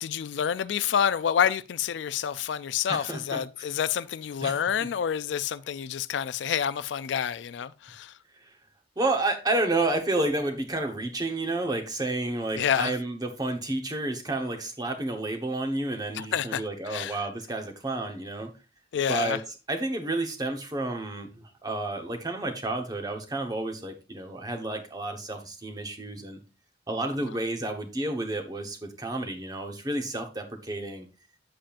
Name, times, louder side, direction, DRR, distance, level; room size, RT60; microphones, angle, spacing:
voice 1, 0.0-8.1 12.6-13.0 16.1-17.2 18.9-19.4, left 8 dB, 75° left, 0.4 m, -28 dB
voice 2, 2.9-3.4 4.4-4.6 9.0-18.5 19.1-19.4 19.7-26.4 26.9-31.1, right 2 dB, 20° right, 1.1 m, -30 dB
8.7 x 7.6 x 2.5 m
head